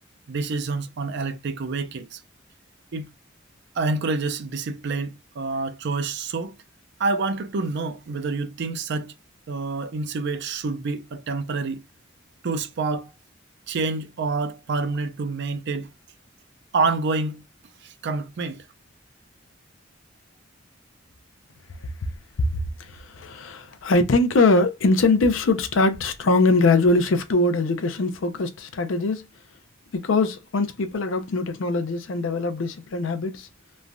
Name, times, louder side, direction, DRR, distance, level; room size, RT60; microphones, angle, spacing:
voice 1, 0.3-2.2 2.9-3.1 3.8-6.6 7.0-9.1 9.5-11.8 12.4-13.1 13.7-15.9 16.7-17.4 17.8-18.7, right 3 dB, 60° right, 0.4 m, -27 dB
voice 2, 22.4-29.2 29.9-33.5, left 3 dB, 80° left, 0.5 m, -22 dB
3.1 x 2.2 x 2.5 m
head